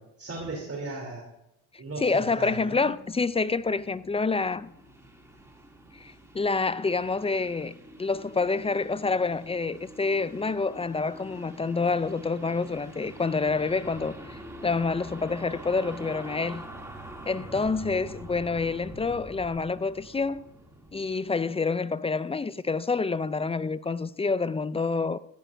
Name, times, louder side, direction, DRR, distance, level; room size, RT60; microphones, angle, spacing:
voice 1, 0.2-1.3 1.8-2.9 17.4-17.7, right 2 dB, 35° right, 3.3 m, -37 dB
sound 1, 1.9-21.4, right 1 dB, 5° right, 2.6 m, -46 dB
voice 2, 2.0-4.7 6.0-14.1 14.6-16.6 17.3-20.4 20.9-25.2, left 4 dB, 15° left, 0.3 m, -27 dB
15.5 x 15.5 x 2.6 m
cardioid pair, 95°, 41 cm